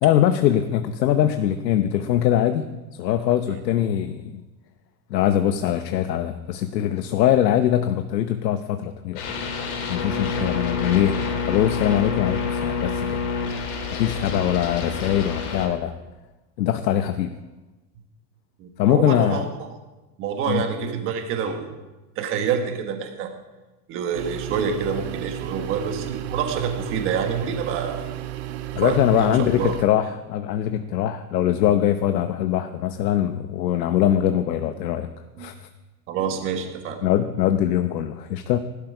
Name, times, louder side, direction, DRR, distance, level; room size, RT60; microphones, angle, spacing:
voice 1, 0.0-2.6 3.0-4.4 5.1-9.2 9.9-13.2 13.9-15.9 16.6-17.3 18.8-19.4 20.5-20.6 28.7-35.1 35.4-35.7 37.0-38.6, left 11 dB, 85° left, 9 dB, 1.0 m, -22 dB
sound 1, 9.2-15.7, left 5 dB, 60° left, 3.7 m, -28 dB
voice 2, 18.6-19.4 20.2-21.7 22.1-23.3 23.9-28.0 28.7-29.3 29.6-29.8 35.4-35.5 36.1-37.0, right 7 dB, 25° right, 5 dB, 1.5 m, -27 dB
sound 2, 24.1-29.8, right 12 dB, 40° right, 0.9 m, -33 dB
16.5 x 12.0 x 5.0 m, 1.1 s
supercardioid pair, 175°, 49 cm